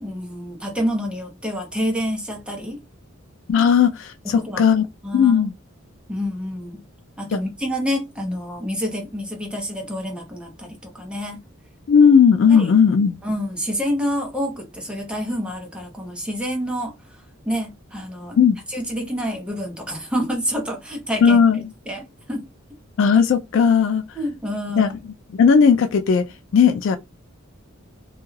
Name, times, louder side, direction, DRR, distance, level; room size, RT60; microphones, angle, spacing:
voice 1, 0.0-2.8 4.2-4.6 5.0-5.5 6.1-6.8 7.2-11.4 12.5-12.7 13.2-16.9 17.5-18.4 18.7-21.4 21.9-22.5 24.2-25.0, equal, 5° right, 0.6 m, -28 dB
voice 2, 3.5-4.9 5.1-5.5 7.3-7.4 11.9-13.2 18.4-18.6 21.2-21.6 23.0-24.0 24.8-24.9 25.3-26.2 26.5-27.0, left 6 dB, 65° left, 0.3 m, -16 dB
2.3 x 2.2 x 3.1 m
head